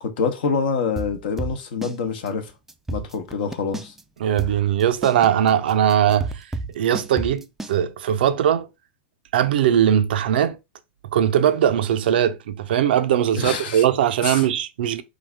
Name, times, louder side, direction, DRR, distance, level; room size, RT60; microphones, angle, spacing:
voice 1, 0.0-2.5 2.9-3.9 13.4-13.8 14.2-14.4, left 5 dB, 65° left, 0.9 m, -26 dB
sound 1, 1.0-2.0 2.3-2.4 2.7-4.0 4.4-7.8, right 2 dB, 5° right, 0.4 m, -30 dB
voice 2, 4.2-6.5 6.7-8.7 9.3-10.6 11.1-15.0, right 10 dB, 65° right, 0.5 m, -20 dB
4.0 x 2.7 x 3.2 m
hypercardioid pair, 100°, 6 cm